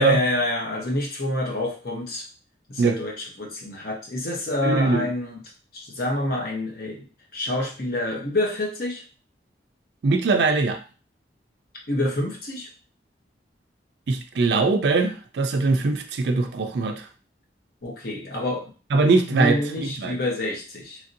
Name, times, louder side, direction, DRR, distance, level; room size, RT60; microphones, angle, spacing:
voice 1, 0.0-2.2 2.7-5.4 5.7-7.1 7.3-9.0 11.9-12.7 17.8-18.7 19.3-21.0, left 1 dB, 55° left, -1 dB, 0.8 m, -27 dB
voice 2, 4.6-5.1 10.0-10.8 14.1-17.1 18.9-20.2, right 3 dB, 65° right, 5 dB, 0.4 m, -21 dB
3.1 x 2.6 x 2.6 m, 0.36 s
head